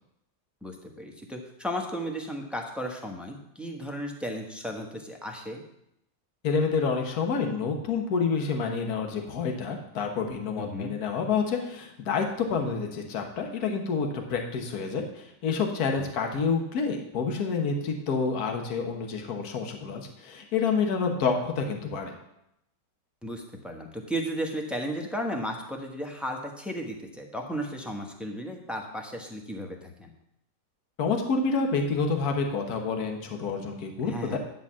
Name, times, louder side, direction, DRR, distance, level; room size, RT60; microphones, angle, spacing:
voice 1, 0.6-5.6 10.6-10.9 15.9-16.1 23.2-30.1 34.1-34.4, equal, ahead, 1 dB, 0.7 m, -34 dB
voice 2, 6.4-22.1 31.0-34.4, left 5 dB, 65° left, 3 dB, 1.6 m, -28 dB
10.5 x 4.1 x 7.3 m, 0.80 s
omnidirectional pair, 1.8 m